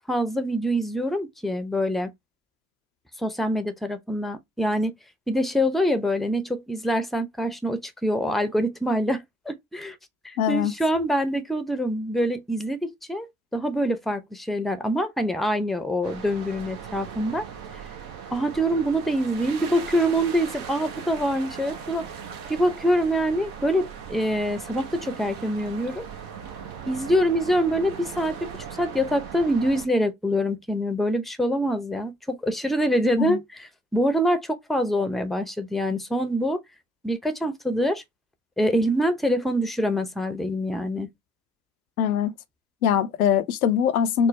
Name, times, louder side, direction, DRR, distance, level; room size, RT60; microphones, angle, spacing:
voice 1, 0.1-2.1 3.2-4.9 5.3-10.0 10.2-17.5 18.3-22.1 22.5-26.0 26.9-28.5 28.8-36.6 37.0-38.0 38.6-41.1, equal, ahead, 0.6 m, -25 dB
voice 2, 10.4-10.7 33.2-33.4 42.0-42.3 42.8-44.3, left 8 dB, 85° left, 0.5 m, -22 dB
sound 1, 16.0-29.9, right 7 dB, 65° right, 1.1 m, -39 dB
4.4 x 2.0 x 3.1 m
figure-of-eight pair, 50°, 42 cm